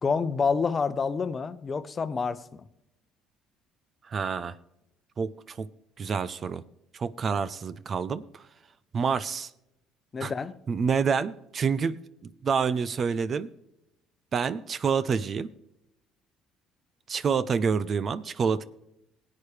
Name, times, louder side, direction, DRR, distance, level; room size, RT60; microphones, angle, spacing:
voice 1, 0.0-2.6 10.1-10.5, left 5 dB, 35° left, 13 dB, 0.8 m, -28 dB
voice 2, 4.1-4.5 5.2-5.7 6.0-6.6 6.9-8.2 8.9-9.5 10.2-10.3 10.7-13.5 14.3-15.5 17.1-18.7, right 6 dB, 45° right, 16 dB, 0.6 m, -28 dB
17.5 x 8.6 x 3.3 m, 0.84 s
supercardioid pair, 80°, 0 cm